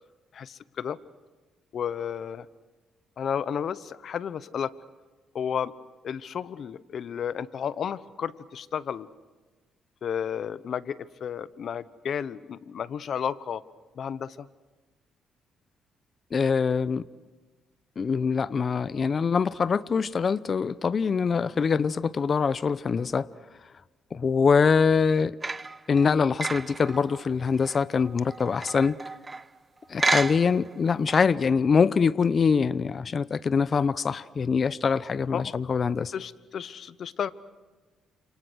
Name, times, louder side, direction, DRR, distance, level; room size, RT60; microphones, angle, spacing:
voice 1, 0.3-1.0 1.7-2.5 3.2-4.7 5.3-5.7 6.0-9.1 10.0-13.6 13.9-14.5 35.3-35.5 36.0-37.3, left 8 dB, 60° left, 1.0 m, -32 dB
voice 2, 16.3-17.0 18.0-23.3 24.1-25.4 25.9-29.0 29.9-36.1, left 5 dB, 45° left, 0.8 m, -24 dB
sound 1, 25.4-29.6 30.0-30.7 31.1-31.2, right 3 dB, 25° right, 0.8 m, -31 dB
30.0 x 27.5 x 6.3 m
cardioid pair, 90°, 0 cm